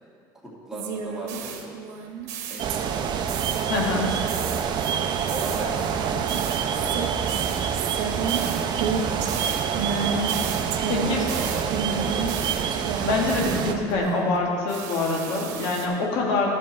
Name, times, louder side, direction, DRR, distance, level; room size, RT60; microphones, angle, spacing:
voice 1, 0.4-1.7 2.5-3.4 4.1-4.9 5.3-7.1 8.1-8.7 11.0-12.5, right 1 dB, 5° right, -5 dB, 2.2 m, -38 dB
sound 1, 0.7-3.0 3.3-3.8 4.3-14.4 14.7-15.9, right 5 dB, 90° right, 1.0 m, -31 dB
sound 2, 2.6-13.7, right 7 dB, 50° right, 0.7 m, -27 dB
voice 2, 3.7-4.2 10.9-11.2 13.1-16.5, left 3 dB, 75° left, -1 dB, 1.7 m, -25 dB
11.0 x 7.4 x 4.4 m, 2.2 s
supercardioid pair, 115°, 9 cm